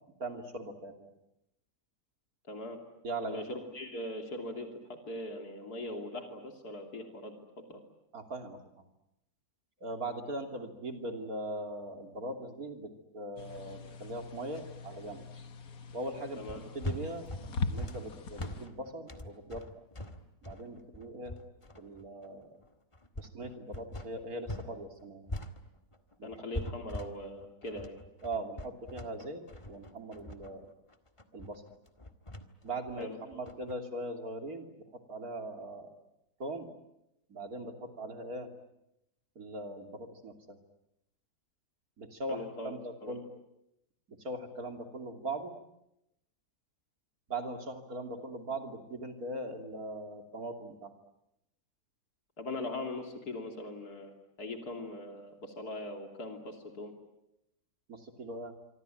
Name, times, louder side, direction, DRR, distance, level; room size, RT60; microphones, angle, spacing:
voice 1, 0.2-1.1 3.0-3.5 8.1-8.9 9.8-15.3 15.9-16.4 16.7-17.3 17.6-19.7 20.4-21.4 21.8-22.6 23.2-25.3 26.2-26.4 28.2-30.7 31.3-31.6 32.6-35.9 36.4-36.7 37.3-38.5 39.3-40.6 42.0-43.2 44.1-45.5 47.3-50.9 57.9-58.5, right 1 dB, 70° right, 5 dB, 3.4 m, -40 dB
voice 2, 2.5-2.8 3.2-7.3 7.7-7.8 16.4-16.6 26.2-28.0 33.0-33.2 42.3-43.1 52.4-54.1 54.4-56.9, left 1 dB, 90° left, 4 dB, 3.6 m, -41 dB
sound 1, 13.4-18.7, left 4 dB, 70° left, 1.9 m, -41 dB
sound 2, 16.5-24.7 25.0-33.7, left 1 dB, 20° left, 1.8 m, -42 dB
26.0 x 25.0 x 9.1 m, 0.84 s
omnidirectional pair, 1.6 m